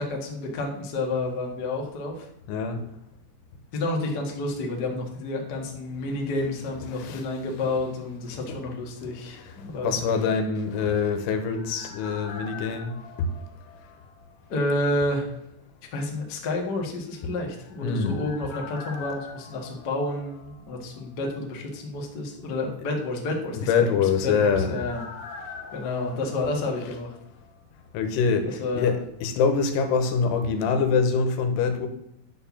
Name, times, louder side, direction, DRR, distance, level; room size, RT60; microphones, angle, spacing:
voice 1, 0.0-2.3 3.7-9.9 14.5-15.3 15.9-25.0 25.7-27.2 28.4-28.9, left 2 dB, 45° left, 0 dB, 1.3 m, -30 dB
voice 2, 2.5-2.8 6.9-7.2 8.5-8.6 9.3-12.9 17.8-18.2 23.7-24.7 27.9-31.9, left 5 dB, 80° left, 7 dB, 3.1 m, -25 dB
sound 1, 10.7-14.6 14.8-14.9 17.3-21.1 21.3-21.4 23.7-27.5 27.8-27.9, left 5 dB, 60° left, 2.6 m, -44 dB
10.5 x 4.5 x 7.1 m, 0.77 s
omnidirectional pair, 4.7 m